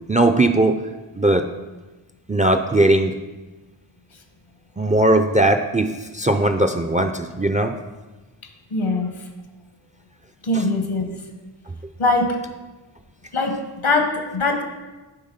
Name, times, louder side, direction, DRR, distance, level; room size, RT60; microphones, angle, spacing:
voice 1, 0.1-0.8 1.2-1.4 2.3-3.2 4.8-7.7 10.5-10.6, right 1 dB, 15° right, 8 dB, 0.3 m, -18 dB
voice 2, 8.7-9.1 10.4-11.1 12.0-12.4 13.3-14.6, left 2 dB, 75° left, 5 dB, 1.1 m, -21 dB
8.1 x 3.6 x 5.2 m, 1.1 s
cardioid pair, 45°, 50 cm